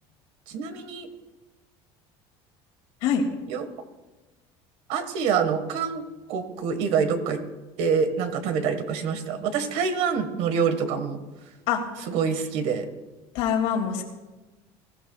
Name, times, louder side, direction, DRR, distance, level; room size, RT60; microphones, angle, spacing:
voice 1, 0.5-1.1 3.5-3.7 4.9-6.0 6.3-7.4 7.8-11.2 12.1-12.9, right 6 dB, 70° right, 8 dB, 1.7 m, -26 dB
voice 2, 13.3-14.0, left 8 dB, 80° left, 2 dB, 2.5 m, -24 dB
21.5 x 15.0 x 2.4 m, 1.2 s
cardioid pair, 145°, 12 cm